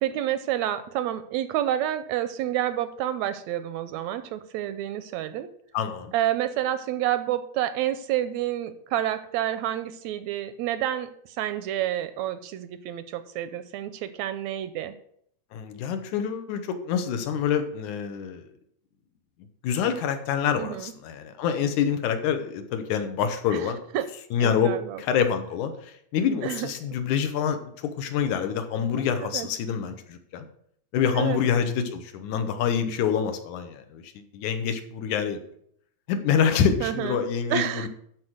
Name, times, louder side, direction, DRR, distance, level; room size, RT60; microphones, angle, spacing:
voice 1, 0.0-5.5 6.1-14.9 20.6-20.9 23.5-24.1 24.4-25.0 26.4-26.7 28.9-29.5 31.1-31.4 36.8-37.2 37.5-37.9, right 12 dB, 80° right, 12 dB, 1.7 m, -29 dB
voice 2, 5.7-6.1 15.5-18.4 19.6-23.8 24.3-24.7 25.0-25.7 26.1-27.7 28.0-30.5 30.9-34.0 34.3-35.4 36.1-37.9, left 7 dB, 80° left, 8 dB, 2.4 m, -26 dB
11.5 x 4.5 x 6.4 m, 0.69 s
omnidirectional pair, 3.4 m